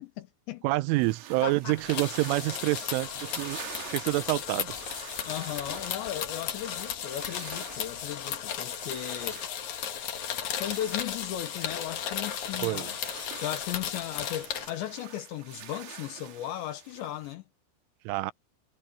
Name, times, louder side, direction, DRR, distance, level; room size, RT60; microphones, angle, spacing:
voice 1, 0.0-0.6 1.4-1.8 5.2-9.4 10.5-12.9 13.4-17.4, left 12 dB, 75° left, 3.3 m, -36 dB
voice 2, 0.6-3.6 3.9-4.7 12.6-12.9 18.1-18.3, right 20 dB, 90° right, 3.2 m, -27 dB
sound 1, 0.9-17.3, right 9 dB, 60° right, 3.7 m, -48 dB
sound 2, 1.8-14.7, left 9 dB, 60° left, 2.2 m, -35 dB
Truck, 2.3-8.5, left 3 dB, 25° left, 1.7 m, -55 dB
omnidirectional pair, 5.5 m